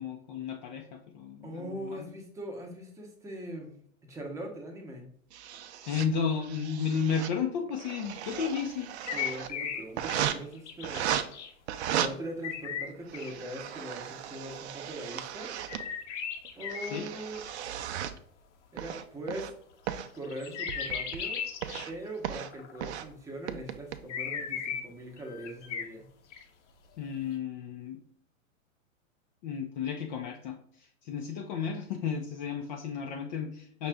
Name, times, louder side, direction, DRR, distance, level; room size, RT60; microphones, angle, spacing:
voice 1, 0.0-2.1 5.9-8.9 16.9-17.0 27.0-28.0 29.4-33.9, left 6 dB, 35° left, 3 dB, 0.5 m, -33 dB
voice 2, 1.4-5.1 9.1-11.2 11.9-15.5 16.5-17.4 18.7-19.5 20.1-21.4 21.9-26.1, right 1 dB, 10° right, 1 dB, 0.8 m, -41 dB
sound 1, 5.3-6.1 6.4-7.3 7.7-9.5 10.0-10.4 10.8-11.2 11.7-12.1 12.9-15.8 16.4-18.2 18.8-19.5 19.9-20.1 20.7-21.2 21.6-21.9 22.2-22.5 22.8-23.1 23.5-24.0, right 10 dB, 55° right, 0.5 m, -36 dB
sound 2, 9.1-10.2 10.5-11.5 12.4-13.3 13.6-14.4 15.7-17.5 20.2-21.9 22.4-22.9 24.1-24.8 25.2-25.9 26.3-26.4, left 7 dB, 60° left, 0.8 m, -36 dB
5.5 x 2.4 x 3.4 m, 0.64 s
hypercardioid pair, 115°, 40 cm